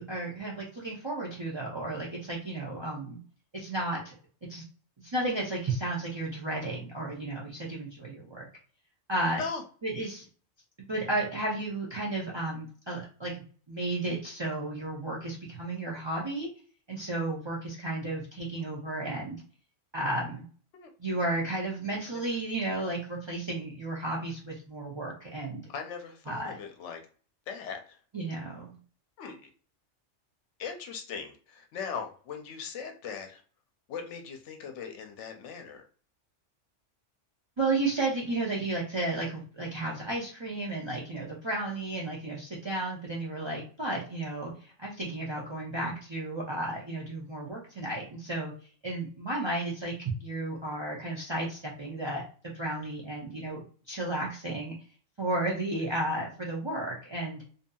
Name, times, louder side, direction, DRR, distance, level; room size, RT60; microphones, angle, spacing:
voice 1, 0.0-3.2 3.5-4.1 4.5-4.6 5.0-8.5 9.1-9.4 9.8-10.3 10.9-16.5 16.9-19.4 19.9-20.5 21.0-25.7 26.3-26.6 28.1-28.8 37.6-44.5 44.8-48.5 48.8-54.7 55.2-57.4, right 2 dB, 35° right, -4 dB, 0.5 m, -33 dB
voice 2, 25.7-27.0 27.5-27.8 29.2-29.4 30.6-33.4 33.9-35.8, left 6 dB, 75° left, 5 dB, 0.9 m, -39 dB
2.7 x 2.6 x 2.3 m, 0.41 s
omnidirectional pair, 1.2 m